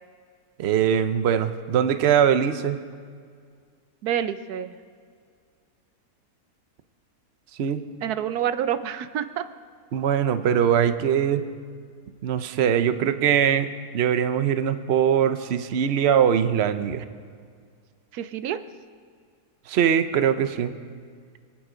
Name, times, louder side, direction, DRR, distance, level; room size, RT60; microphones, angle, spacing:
voice 1, 0.6-2.8 7.6-7.8 9.9-11.4 12.2-13.7 13.9-17.0 19.7-20.7, right 8 dB, 55° right, 10 dB, 0.8 m, -21 dB
voice 2, 4.0-4.7 8.0-9.4 18.1-18.6, right 10 dB, 70° right, 12 dB, 1.2 m, -27 dB
26.0 x 9.3 x 5.0 m, 2.1 s
omnidirectional pair, 1.7 m